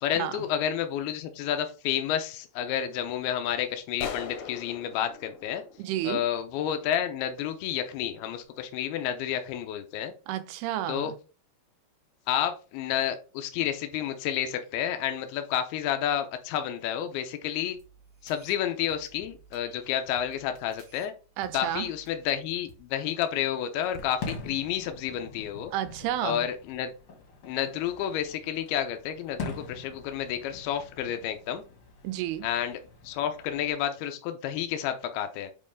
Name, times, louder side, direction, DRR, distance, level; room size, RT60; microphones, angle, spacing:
voice 1, 0.0-5.6 6.0-10.1 10.9-11.1 12.3-17.8 18.2-21.1 21.5-25.7 26.2-26.9 27.4-31.6 32.4-32.8 33.0-35.5, left 10 dB, 85° left, 2.6 m, -30 dB
sound 1, 4.0-6.6, left 7 dB, 70° left, 2.0 m, -40 dB
voice 2, 5.8-6.2 10.3-11.2 21.4-21.9 25.7-26.5 32.0-32.5, right 12 dB, 85° right, 2.7 m, -31 dB
sound 2, 17.7-22.8, right 4 dB, 65° right, 1.3 m, -56 dB
Fireworks, 23.8-33.7, left 4 dB, 55° left, 1.7 m, -44 dB
7.5 x 4.6 x 3.5 m
omnidirectional pair, 4.6 m